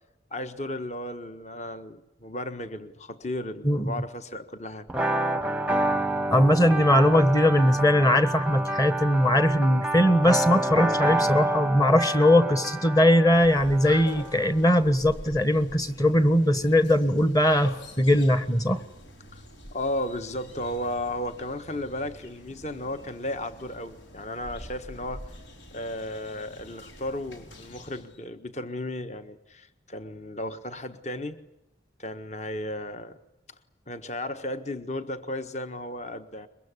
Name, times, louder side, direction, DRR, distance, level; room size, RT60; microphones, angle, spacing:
voice 1, 0.3-4.9 19.3-19.4 19.7-25.3 25.7-31.4 32.0-33.2 33.9-36.5, left 1 dB, 40° left, 9 dB, 1.5 m, -34 dB
voice 2, 3.6-3.9 6.3-18.8, left 1 dB, 20° left, 11 dB, 1.3 m, -20 dB
sound 1, 4.9-14.5, right 1 dB, 5° right, 0.9 m, -28 dB
sound 2, 13.3-28.2, left 1 dB, 85° left, 4.9 m, -45 dB
23.5 x 22.5 x 9.9 m, 0.87 s
head